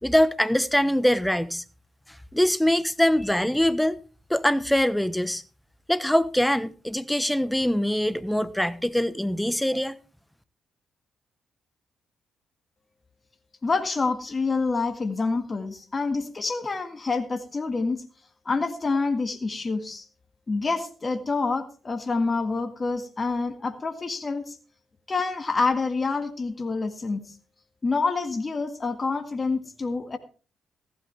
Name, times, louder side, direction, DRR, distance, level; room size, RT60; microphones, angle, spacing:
voice 1, 0.0-1.6 2.3-4.0 4.3-5.4 5.9-10.0, equal, 5° left, 1.0 m, -23 dB
voice 2, 13.6-18.0 18.4-20.1 20.5-24.6 25.1-27.3 27.8-30.2, left 4 dB, 35° left, 1.8 m, -27 dB
15.0 x 12.0 x 3.4 m
hypercardioid pair, 50°, 0 cm